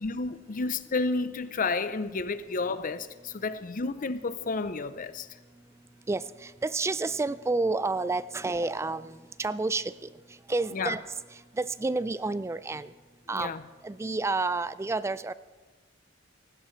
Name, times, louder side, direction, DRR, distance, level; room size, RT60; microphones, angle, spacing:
voice 1, 0.0-5.3 10.7-11.0 13.3-13.6, left 3 dB, 45° left, 13 dB, 0.6 m, -31 dB
voice 2, 6.1-10.1 10.5-11.0 11.5-12.9 13.3-13.5 13.8-15.3, right 3 dB, 15° right, 16 dB, 0.3 m, -30 dB
18.0 x 16.0 x 3.2 m, 1.3 s
head